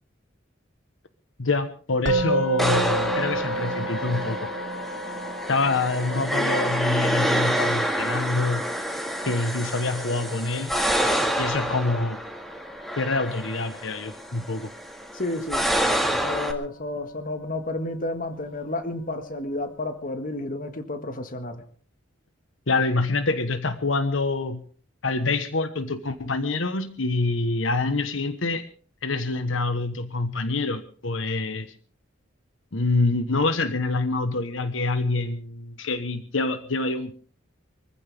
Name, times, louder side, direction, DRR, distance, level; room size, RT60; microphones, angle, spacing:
voice 1, 1.4-4.5 5.5-8.6 9.3-10.7 11.4-12.2 13.0-14.7 22.7-24.6 25.0-28.7 29.0-31.7 32.7-37.1, left 3 dB, 75° left, 10 dB, 1.2 m, -26 dB
Musical instrument, 2.0-13.2, right 1 dB, 65° right, 3.2 m, -32 dB
sound 1, 2.6-16.5, equal, ahead, 2.0 m, -28 dB
voice 2, 15.1-15.8 16.0-21.6, left 2 dB, 45° left, 8 dB, 1.7 m, -31 dB
24.0 x 15.0 x 3.5 m, 0.41 s
head